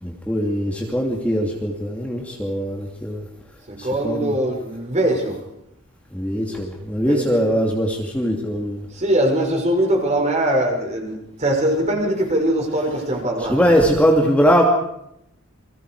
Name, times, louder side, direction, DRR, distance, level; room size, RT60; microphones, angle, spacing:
voice 1, 0.0-3.3 3.8-4.3 6.1-8.9 13.5-14.6, equal, 5° left, 0 dB, 2.6 m, -21 dB
voice 2, 3.7-5.4 7.1-7.4 8.9-13.7, right 1 dB, 35° right, 2 dB, 6.3 m, -22 dB
29.5 x 24.0 x 4.9 m, 0.78 s
head